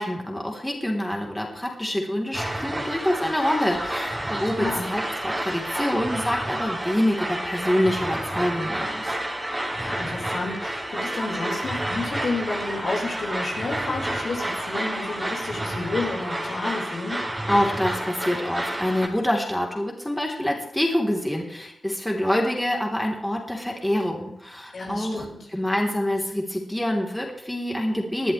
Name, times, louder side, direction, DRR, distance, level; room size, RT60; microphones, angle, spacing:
voice 1, 0.0-9.2 17.5-25.3 25.5-28.3, left 1 dB, 10° left, 0 dB, 3.5 m, -26 dB
sound 1, 2.3-19.1, right 1 dB, 20° right, 3.8 m, -30 dB
voice 2, 4.4-4.9 9.8-17.2 24.7-25.5, left 3 dB, 70° left, -3 dB, 4.8 m, -31 dB
20.5 x 11.0 x 3.3 m, 0.81 s
cardioid pair, 55°, 0 cm